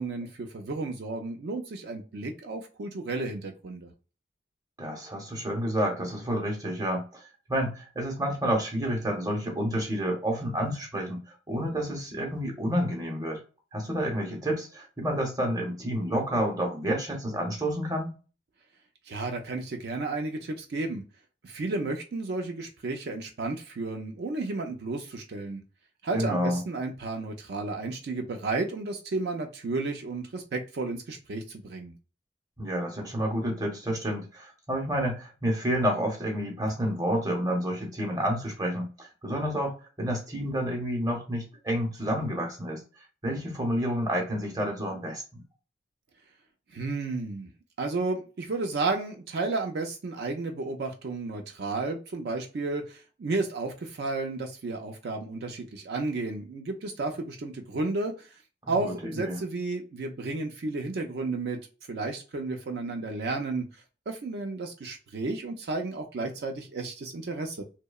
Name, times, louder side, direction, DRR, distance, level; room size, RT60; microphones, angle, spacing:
voice 1, 0.0-3.9 19.1-21.0 21.4-25.6 26.0-31.9 46.7-47.5 47.8-58.3 58.7-61.6 61.9-63.6 64.1-67.6, right 3 dB, 65° right, 4 dB, 0.4 m, -32 dB
voice 2, 4.8-7.0 7.5-11.2 11.5-13.4 13.7-18.1 26.1-26.6 32.6-42.8 43.2-45.4 58.7-59.4, equal, 20° right, 1 dB, 0.7 m, -29 dB
2.8 x 2.0 x 2.3 m, 0.35 s
head